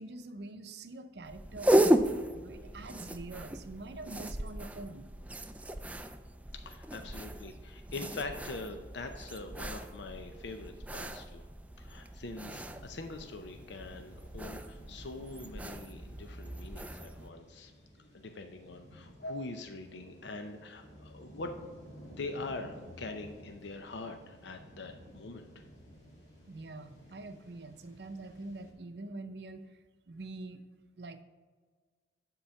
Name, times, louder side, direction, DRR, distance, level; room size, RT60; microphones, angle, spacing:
voice 1, 0.0-5.1 15.0-15.1 26.5-29.7 30.1-30.6 31.0-31.2, right 2 dB, 60° right, 9 dB, 0.6 m, -45 dB
sound 1, 1.2-17.3, right 1 dB, 10° right, 0.3 m, -35 dB
voice 2, 6.5-11.4 11.8-17.7 18.1-21.5 22.2-25.6, left 3 dB, 70° left, 5 dB, 0.6 m, -43 dB
sound 2, 12.3-28.7, equal, 35° left, 2.3 m, -54 dB
11.5 x 3.9 x 5.7 m, 1.5 s
head